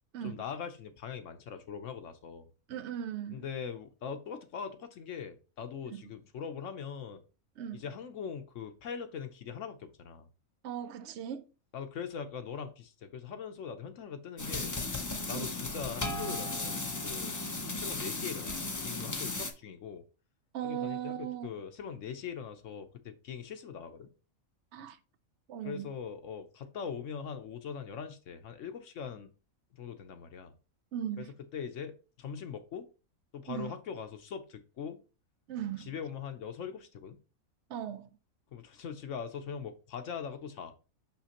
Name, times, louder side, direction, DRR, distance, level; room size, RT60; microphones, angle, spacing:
voice 1, 0.2-2.5 3.3-7.2 7.7-10.3 11.7-14.7 15.3-17.4 17.8-20.0 20.6-24.1 25.6-29.3 29.7-30.5 31.2-31.3 31.5-32.9 33.3-35.0 35.8-37.2 38.5-40.7, left 7 dB, 65° left, 1.0 m, -41 dB
voice 2, 2.7-3.4 5.9-6.0 7.6-7.8 10.6-11.4 15.3-15.5 20.5-21.5 24.7-25.0 25.5-25.9 30.9-31.3 33.5-33.7 35.5-35.9 37.7-38.1, right 10 dB, 65° right, 0.8 m, -38 dB
sound 1, 14.4-19.5, left 2 dB, 30° left, 0.3 m, -35 dB
6.0 x 5.7 x 2.9 m
omnidirectional pair, 1.4 m